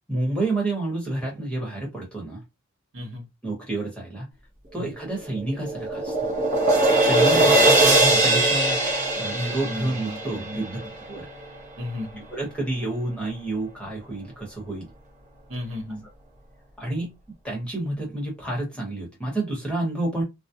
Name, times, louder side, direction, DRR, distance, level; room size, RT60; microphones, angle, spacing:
voice 1, 0.1-2.4 3.4-4.3 4.7-6.1 7.0-10.8 11.1-11.3 12.2-14.9 16.8-17.1 17.4-20.2, right 2 dB, 5° left, 1.0 m, -29 dB
voice 2, 2.9-3.3 4.8-4.9 7.3-7.6 8.1-8.2 9.7-10.6 11.8-12.2 15.5-16.0, left 1 dB, 60° right, 0.9 m, -34 dB
sound 1, 5.1-11.4, right 2 dB, 35° right, 0.6 m, -21 dB
2.3 x 2.1 x 2.7 m
head